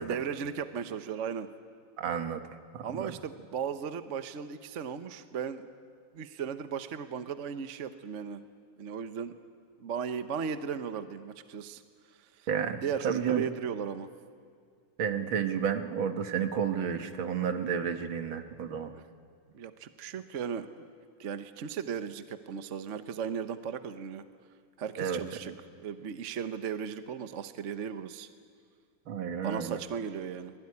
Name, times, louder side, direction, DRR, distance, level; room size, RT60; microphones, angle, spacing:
voice 1, 0.1-1.5 2.8-5.7 6.1-8.4 8.8-9.3 9.8-11.8 12.1-12.5 12.8-14.1 18.9-19.0 19.5-20.9 21.2-24.2 24.8-28.3 29.4-30.5, right 7 dB, 50° right, 10 dB, 0.9 m, -36 dB
voice 2, 2.0-2.4 2.7-3.1 12.5-13.4 15.0-18.9 25.0-25.2 29.1-29.8, right 7 dB, 65° right, 7 dB, 2.1 m, -31 dB
25.5 x 21.0 x 9.7 m, 2.1 s
omnidirectional pair, 2.4 m